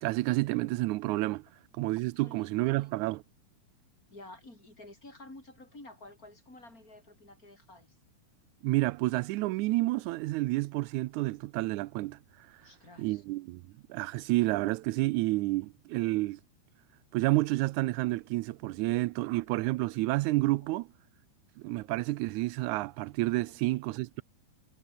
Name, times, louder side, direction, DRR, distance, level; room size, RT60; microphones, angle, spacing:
voice 1, 0.0-1.4 1.8-3.2 8.6-12.2 13.0-13.6 13.9-16.4 17.1-20.9 21.6-24.2, right 20 dB, 80° right, 2.0 m, -29 dB
voice 2, 2.2-2.9 4.1-8.0 12.6-13.2 23.5-23.8, left 2 dB, 25° left, 8.1 m, -51 dB
omnidirectional pair, 3.4 m